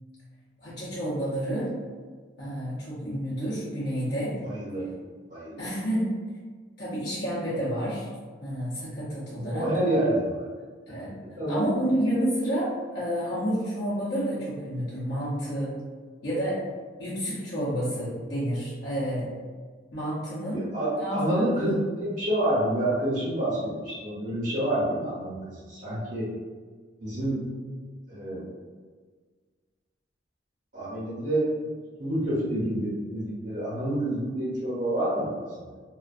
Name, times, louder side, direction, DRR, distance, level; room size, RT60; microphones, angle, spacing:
voice 1, 0.6-1.7 2.4-4.4 5.6-6.1 6.8-8.1 8.4-9.7 10.9-15.7 16.2-16.6 17.0-19.3 19.9-20.6 21.0-21.2 21.6-21.7, equal, 60° left, -10 dB, 0.6 m, -29 dB
voice 2, 4.4-4.9 5.3-5.7 9.3-10.4 11.2-11.6 20.5-26.3 27.0-27.5 28.1-28.4 30.7-31.5 32.0-35.3, right 1 dB, 45° right, -8 dB, 0.8 m, -28 dB
2.4 x 2.2 x 2.4 m, 1.5 s
head